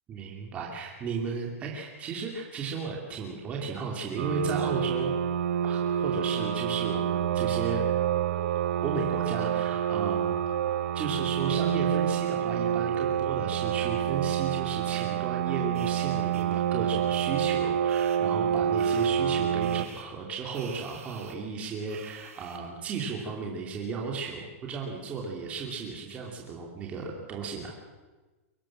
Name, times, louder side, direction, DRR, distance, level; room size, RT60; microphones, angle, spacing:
voice 1, 0.1-5.1 5.6-7.8 8.8-10.4 10.9-27.7, right 4 dB, 15° right, -1 dB, 2.8 m, -34 dB
sound 1, 4.2-19.9, right 9 dB, 70° right, 1.3 m, -28 dB
sound 2, 5.4-11.2, equal, 15° left, 5.0 m, -44 dB
sound 3, 15.7-15.9 16.3-16.5 17.1-17.3 17.9-18.2 18.8-19.1 19.6-20.0 20.5-21.3 21.9-22.6, right 8 dB, 90° right, 4.6 m, -47 dB
23.5 x 18.0 x 7.6 m, 1.2 s
supercardioid pair, 170°, 8 cm